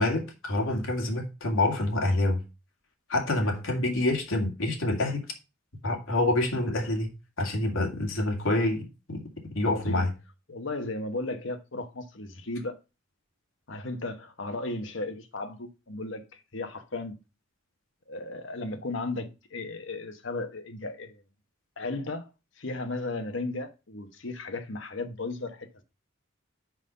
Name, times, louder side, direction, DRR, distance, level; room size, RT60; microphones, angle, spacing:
voice 1, 0.0-2.4 3.1-5.3 5.8-7.1 7.4-9.2 9.5-10.1, left 2 dB, 85° left, 2.2 m, -27 dB
voice 2, 9.7-10.1 10.5-12.8 13.7-16.2 16.5-17.2 18.1-21.2 21.8-22.3 22.6-25.7, left 2 dB, 70° left, 1.2 m, -35 dB
6.0 x 5.4 x 5.7 m
head